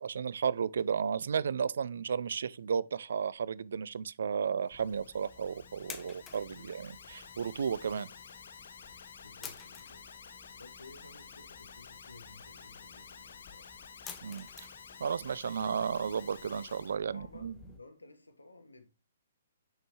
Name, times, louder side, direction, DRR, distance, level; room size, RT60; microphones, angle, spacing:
voice 1, 0.0-8.1 14.2-14.5 15.0-17.6, right 6 dB, 55° right, 0.4 m, -33 dB
Alarm, 4.6-17.0, left 6 dB, 55° left, 0.8 m, -51 dB
sound 1, 4.7-17.8, left 6 dB, 15° left, 0.8 m, -53 dB
voice 2, 9.2-10.1 10.6-13.7 17.1-18.9, left 2 dB, 80° left, 1.4 m, -55 dB
6.4 x 6.4 x 3.0 m
figure-of-eight pair, 125°, 0 cm